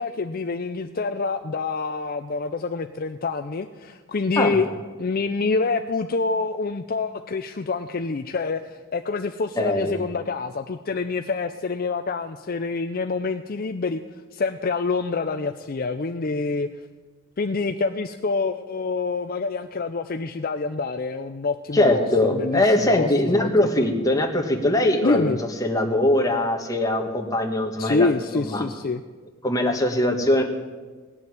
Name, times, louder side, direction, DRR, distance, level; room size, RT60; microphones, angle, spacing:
voice 1, 0.0-4.7 5.0-14.0 14.3-16.7 17.4-23.7 25.0-25.4 27.8-29.0, left 4 dB, 45° left, 8 dB, 0.5 m, -26 dB
voice 2, 9.6-10.0 21.7-25.3 25.6-28.6 29.4-30.4, left 1 dB, 15° left, 3 dB, 1.6 m, -21 dB
17.5 x 7.0 x 9.7 m, 1.4 s
head